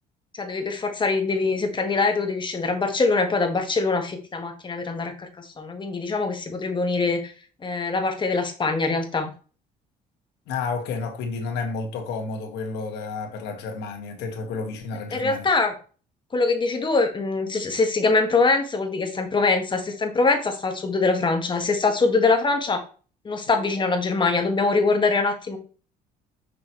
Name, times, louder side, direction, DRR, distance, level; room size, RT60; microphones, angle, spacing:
voice 1, 0.3-7.3 7.6-9.3 15.1-15.7 16.3-22.8 23.2-25.6, left 3 dB, 30° left, 1.7 m, -23 dB
voice 2, 10.5-15.5, left 4 dB, 90° left, 1.7 m, -31 dB
6.3 x 5.8 x 3.1 m
cardioid pair, 110°, 17 cm